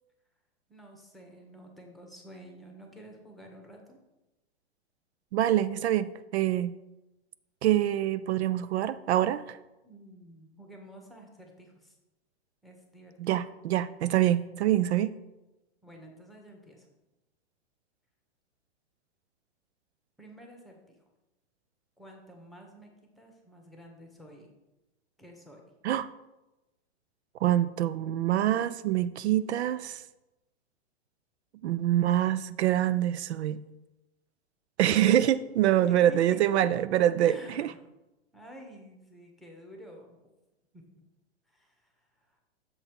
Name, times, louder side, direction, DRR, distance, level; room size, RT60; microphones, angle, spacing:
voice 1, 0.7-4.0 9.8-12.0 12.6-13.5 15.8-16.9 20.2-21.0 22.0-22.9 23.2-24.5 25.2-25.6 35.9-36.4 37.2-37.8 38.3-40.2 40.7-41.0 41.5-42.4, equal, ahead, 1 dB, 1.1 m, -50 dB
voice 2, 5.3-6.7 7.6-9.6 13.2-15.1 25.8-26.1 27.4-30.0 31.6-33.6 34.8-37.7, right 12 dB, 75° right, 14 dB, 0.5 m, -25 dB
7.1 x 4.2 x 5.3 m, 0.99 s
hypercardioid pair, 130°, 33 cm